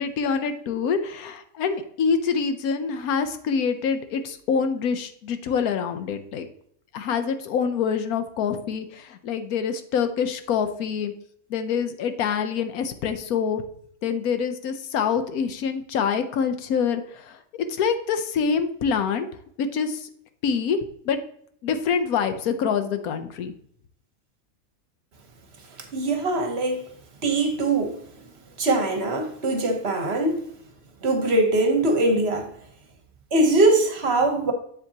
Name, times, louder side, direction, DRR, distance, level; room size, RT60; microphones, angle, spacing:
voice 1, 0.0-6.5 6.9-11.1 11.5-13.6 14.0-19.3 19.6-20.1 20.4-20.8 21.0-21.2 21.6-23.5, left 6 dB, 85° left, 1.2 m, -26 dB
voice 2, 25.9-26.9 27.2-28.0 28.6-30.4 31.0-32.5 33.3-34.5, right 2 dB, 50° right, 1.2 m, -22 dB
7.6 x 7.5 x 2.8 m
omnidirectional pair, 1.5 m